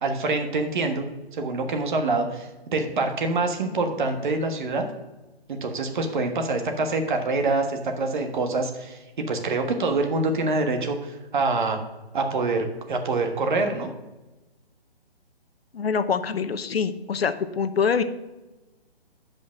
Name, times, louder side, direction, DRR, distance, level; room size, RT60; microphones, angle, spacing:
voice 1, 0.0-1.1 1.3-4.8 5.5-11.8 12.1-13.9, right 3 dB, 50° right, 5 dB, 1.4 m, -25 dB
voice 2, 15.7-18.0, left 6 dB, 70° left, 11 dB, 0.8 m, -25 dB
8.6 x 5.2 x 5.9 m, 1.1 s
hypercardioid pair, 150°, 31 cm